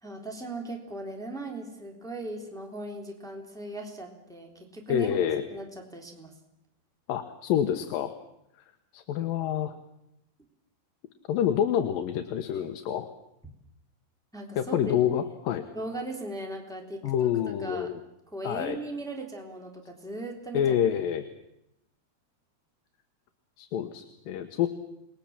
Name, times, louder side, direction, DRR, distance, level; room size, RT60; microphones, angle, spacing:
voice 1, 0.0-5.1 5.5-6.3 14.3-14.9 15.7-17.3 17.6-17.9 18.3-20.8, right 2 dB, ahead, 2 dB, 3.1 m, -38 dB
voice 2, 4.9-5.4 7.1-8.1 8.9-9.8 11.3-13.1 14.6-15.7 17.0-18.0 18.4-18.8 20.5-21.3 23.6-24.7, left 9 dB, 70° left, 7 dB, 2.7 m, -27 dB
29.5 x 21.0 x 7.4 m, 0.82 s
omnidirectional pair, 4.5 m